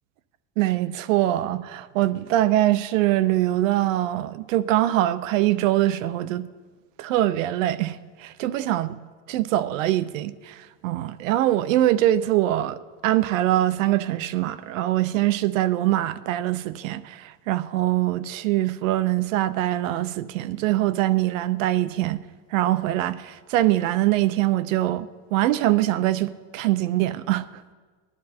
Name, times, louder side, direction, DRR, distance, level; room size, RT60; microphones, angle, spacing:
voice 1, 0.6-6.5 7.0-8.9 9.3-22.2 22.5-27.5, right 14 dB, 70° right, 0.7 m, -23 dB
20.5 x 11.0 x 4.3 m
supercardioid pair, 175°, 40 cm